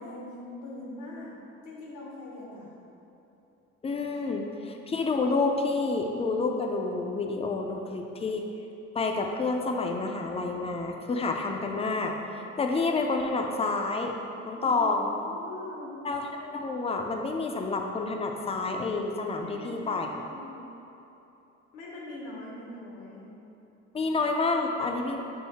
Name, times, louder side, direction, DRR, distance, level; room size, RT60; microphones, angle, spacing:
voice 1, 0.0-1.3 1.6-2.8 4.1-4.3 14.6-16.0 19.4-20.7 21.7-23.3, left 2 dB, 90° left, -4 dB, 1.0 m, -42 dB
voice 2, 3.8-8.4 8.9-14.1 14.4-15.1 16.0-20.1 23.9-25.2, left 3 dB, 20° left, 3 dB, 0.4 m, -29 dB
5.5 x 2.1 x 4.1 m, 2.9 s
cardioid pair, 90°, 30 cm